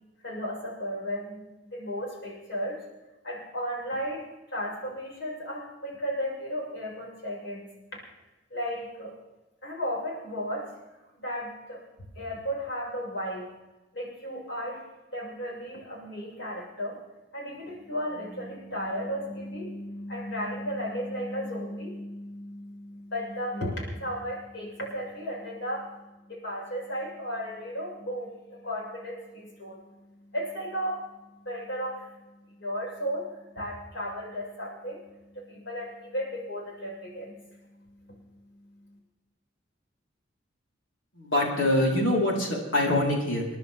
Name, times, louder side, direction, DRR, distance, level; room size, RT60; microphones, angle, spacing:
voice 1, 0.2-2.8 3.2-7.7 8.5-9.2 9.6-10.7 11.2-11.8 12.1-13.5 13.9-14.8 15.1-17.0 17.3-32.2 32.6-39.0, equal, 70° left, -4 dB, 6.7 m, -35 dB
voice 2, 41.2-43.5, left 1 dB, 90° left, -2 dB, 4.7 m, -24 dB
29.5 x 10.5 x 3.7 m, 1.1 s
head